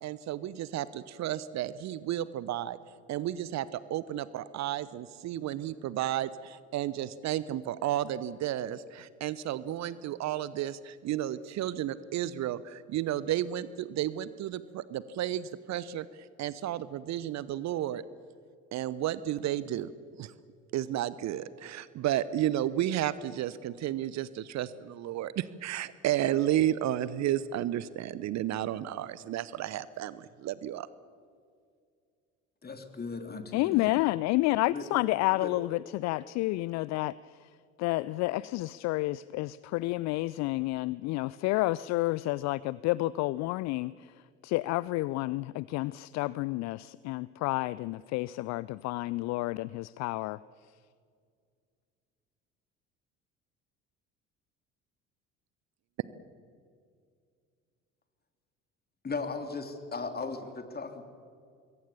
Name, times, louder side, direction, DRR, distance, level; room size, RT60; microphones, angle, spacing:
voice 1, 0.0-2.8 3.1-16.1 16.4-18.0 18.7-19.9 20.2-20.3 20.7-30.9, right 12 dB, 45° right, 17 dB, 0.9 m, -32 dB
voice 2, 32.6-33.9 34.7-34.9 35.3-35.5 59.0-61.0, left 4 dB, 25° left, 6 dB, 3.3 m, -37 dB
voice 3, 33.5-37.5 37.8-44.1 44.4-50.4, left 19 dB, 45° left, 20 dB, 0.5 m, -30 dB
26.0 x 22.5 x 7.1 m, 2.2 s
figure-of-eight pair, 55°, 39 cm